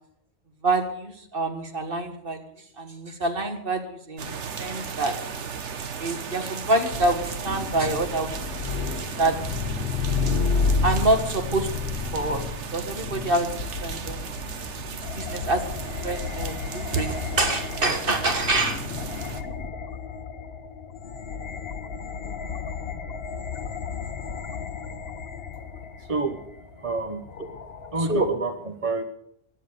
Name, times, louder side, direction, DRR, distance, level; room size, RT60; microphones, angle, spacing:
voice 1, 0.6-2.5 2.8-5.2 6.0-8.4 8.8-9.4 10.8-14.3 14.9-18.9 28.0-28.3, right 2 dB, 50° right, 6 dB, 1.8 m, -27 dB
sound 1, 4.2-19.4, right 6 dB, 80° right, 1.4 m, -36 dB
sound 2, 6.9-19.7, left 4 dB, 80° left, 1.3 m, -30 dB
sound 3, 15.0-28.3, left 6 dB, 60° left, 1.0 m, -36 dB
voice 2, 26.0-26.4 26.8-27.2 27.9-29.0, right 3 dB, 30° right, 8 dB, 1.0 m, -28 dB
16.0 x 10.5 x 6.7 m, 0.72 s
omnidirectional pair, 1.2 m